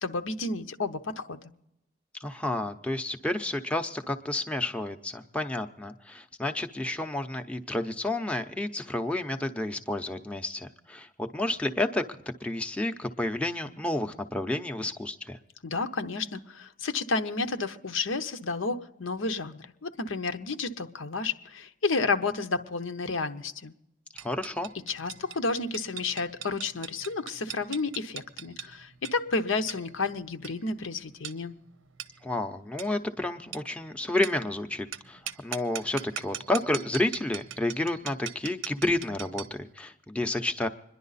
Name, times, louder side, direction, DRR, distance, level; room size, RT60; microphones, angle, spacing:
voice 1, 0.0-1.4 15.6-23.7 24.9-31.5, left 3 dB, 90° left, 8 dB, 0.9 m, -31 dB
voice 2, 2.2-12.0 12.4-15.4 24.1-24.7 32.2-40.7, left 1 dB, 5° left, 5 dB, 0.6 m, -30 dB
tin-can, 24.2-39.6, right 9 dB, 90° right, 0.8 m, -42 dB
26.0 x 11.0 x 4.1 m, 0.90 s
head